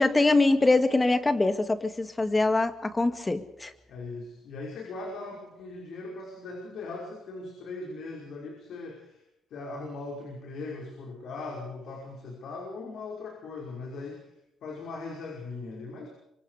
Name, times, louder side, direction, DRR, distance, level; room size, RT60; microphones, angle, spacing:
voice 1, 0.0-3.7, left 2 dB, 20° left, 9 dB, 2.0 m, -23 dB
voice 2, 3.9-9.2 9.5-14.3 14.6-16.1, left 3 dB, 70° left, -1 dB, 5.7 m, -39 dB
25.5 x 23.5 x 5.0 m, 0.83 s
cardioid pair, 90°, 0 cm